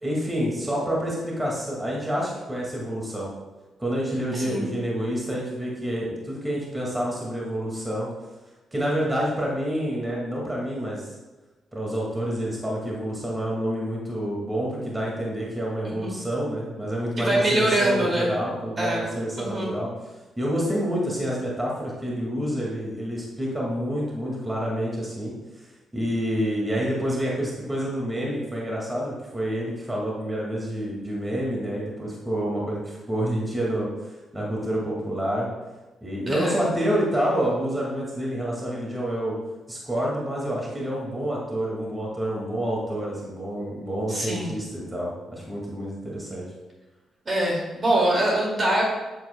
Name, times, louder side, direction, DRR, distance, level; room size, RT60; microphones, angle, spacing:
voice 1, 0.0-3.3 3.8-8.1 8.7-11.0 11.7-19.9 20.4-25.3 25.9-33.9 34.3-35.5 36.0-39.4 39.7-46.4, equal, 15° right, -4 dB, 2.0 m, -28 dB
voice 2, 17.2-18.3 18.8-19.0 19.4-19.7 36.3-36.6 44.1-44.5 47.3-48.8, right 1 dB, 40° right, -2 dB, 2.2 m, -24 dB
7.8 x 7.4 x 2.2 m, 1.1 s
cardioid pair, 65°, 0 cm